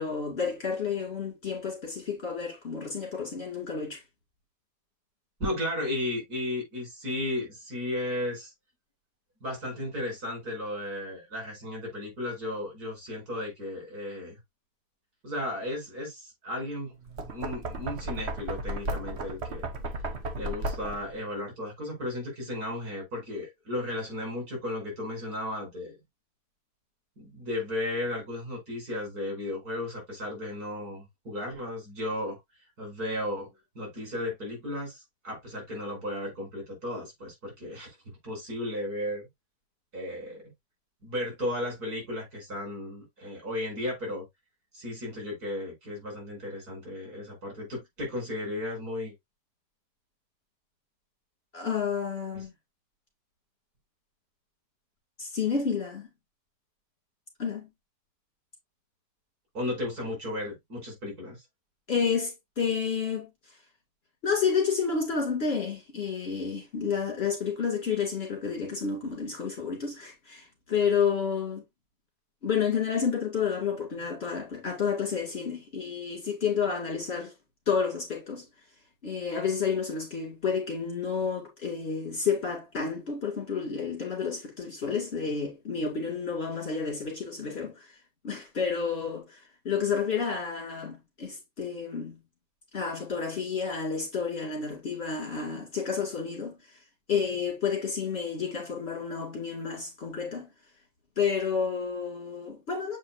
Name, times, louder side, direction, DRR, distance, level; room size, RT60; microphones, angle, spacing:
voice 1, 0.0-4.0 51.5-52.5 55.2-56.1 57.4-57.7 61.9-63.3 64.2-71.6 72.4-77.3 77.7-78.5 79.0-87.9 88.2-89.4 89.6-92.2 92.7-96.6 97.1-100.5 101.2-103.0, left 6 dB, 40° left, 2.7 m, -30 dB
voice 2, 5.4-8.5 9.4-14.4 15.2-16.9 17.3-19.7 20.3-26.0 27.2-32.4 32.8-33.5 33.8-38.0 38.2-39.3 39.9-40.4 41.0-44.2 44.7-49.1 52.4-52.5 59.5-61.4, left 1 dB, 85° right, 5.5 m, -34 dB
Knock, 17.0-21.2, right 1 dB, 50° right, 1.3 m, -34 dB
7.6 x 4.7 x 2.7 m
omnidirectional pair, 1.6 m